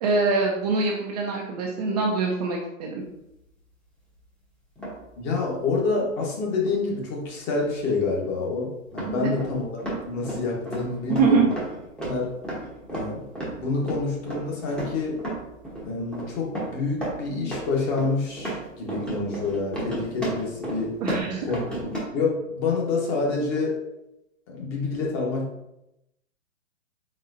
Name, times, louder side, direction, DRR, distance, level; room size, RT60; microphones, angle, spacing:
voice 1, 0.0-3.0 9.1-9.3 11.1-11.5 21.0-21.5, right 4 dB, 30° right, 0 dB, 0.4 m, -24 dB
sound 1, 4.8-5.1 6.7-6.8 7.8-7.9 8.9-22.0, right 1 dB, ahead, 0.8 m, -34 dB
voice 2, 5.2-9.7 10.0-11.5 12.0-12.3 12.9-13.2 13.6-15.2 15.8-21.0 21.4-23.8 24.5-25.5, left 3 dB, 35° left, -2 dB, 1.2 m, -27 dB
4.2 x 3.6 x 2.5 m, 0.87 s
hypercardioid pair, 125°, 40 cm